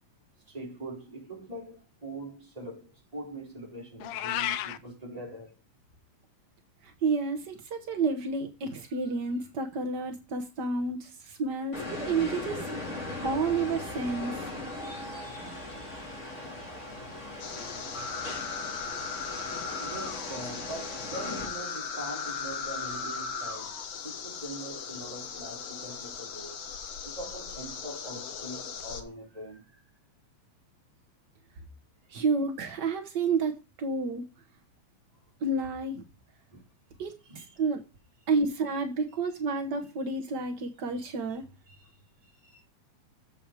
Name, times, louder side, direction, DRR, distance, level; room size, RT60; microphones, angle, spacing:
voice 1, 0.5-5.5 19.8-23.8 24.0-26.6 27.0-29.8 32.1-32.2 36.5-36.6 37.2-37.5 40.9-41.0 41.7-41.9 42.2-42.6, right 1 dB, 10° right, 3.2 m, -43 dB
Meow, 4.0-4.8, left 13 dB, 85° left, 2.2 m, -31 dB
voice 2, 6.8-12.9 13.2-14.5 32.1-34.2 35.4-36.0 37.0-37.8 38.3-41.4, right 4 dB, 80° right, 0.9 m, -30 dB
sound 1, 11.7-21.5, left 2 dB, 25° left, 3.0 m, -39 dB
sound 2, 17.4-29.0, left 5 dB, 55° left, 1.6 m, -38 dB
7.5 x 6.0 x 4.9 m
omnidirectional pair, 3.5 m